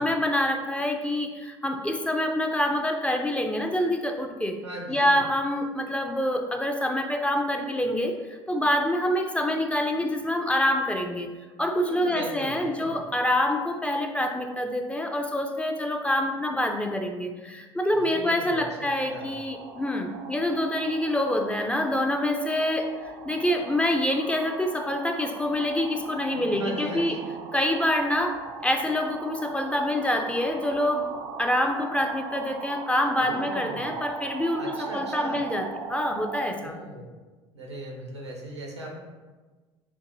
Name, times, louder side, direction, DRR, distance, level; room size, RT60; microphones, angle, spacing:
voice 1, 0.0-4.6 4.9-11.3 11.6-27.1 27.5-31.1 31.4-36.7, left 1 dB, 10° left, 4 dB, 0.4 m, -26 dB
voice 2, 4.6-5.2 11.9-13.0 17.9-19.3 26.3-27.2 33.2-33.9 34.6-35.4 36.6-37.1 37.5-39.0, right 1 dB, 90° right, -1 dB, 0.8 m, -39 dB
sound 1, 18.8-36.5, right 5 dB, 50° right, 0.5 m, -40 dB
6.9 x 2.6 x 2.6 m, 1.3 s
figure-of-eight pair, 65°, 14 cm